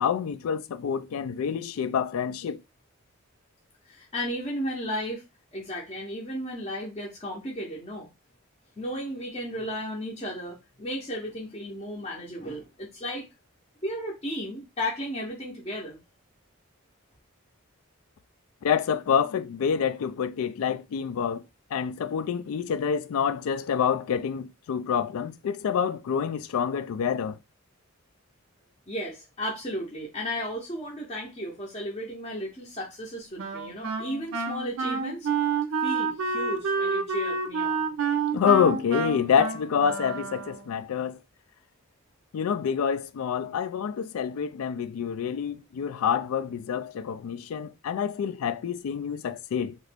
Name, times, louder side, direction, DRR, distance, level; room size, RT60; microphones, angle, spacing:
voice 1, 0.0-2.6 18.6-21.4 21.7-27.4 38.3-41.2 42.3-49.8, left 7 dB, 75° left, 0.3 m, -27 dB
voice 2, 3.9-5.2 5.5-8.1 8.8-13.3 13.8-16.0 28.9-35.3 35.8-37.9, equal, 25° left, 0.6 m, -34 dB
Wind instrument woodwind instrument, 33.4-40.8, right 4 dB, 70° right, 0.5 m, -29 dB
2.9 x 2.5 x 3.3 m
head